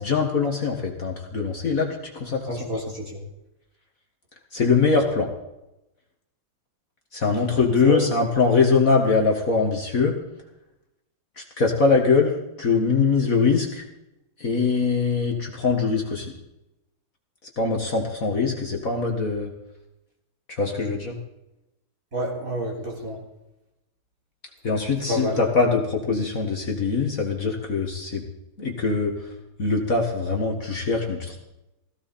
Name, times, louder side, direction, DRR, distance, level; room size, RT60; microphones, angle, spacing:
voice 1, 0.0-2.8 4.5-5.3 7.1-10.2 11.4-12.3 12.6-13.8 14.4-16.3 17.6-19.5 20.5-21.2 24.6-28.2 28.6-29.3 29.6-31.4, left 4 dB, 45° left, 1 dB, 2.2 m, -22 dB
voice 2, 2.5-3.2 7.8-8.0 22.1-23.2 25.1-25.4, equal, 40° right, -2 dB, 4.5 m, -28 dB
17.0 x 16.5 x 4.3 m, 0.91 s
omnidirectional pair, 2.2 m